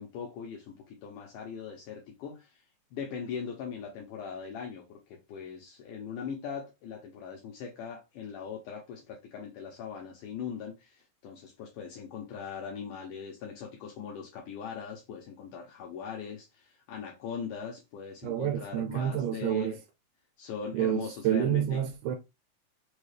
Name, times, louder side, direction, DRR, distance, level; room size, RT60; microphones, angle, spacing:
voice 1, 0.0-2.6 2.9-19.8 20.4-21.8, left 7 dB, 75° left, 2.1 m, -40 dB
voice 2, 18.2-19.7 20.7-22.2, right 11 dB, 90° right, 2.4 m, -29 dB
5.5 x 2.3 x 3.2 m
omnidirectional pair, 4.0 m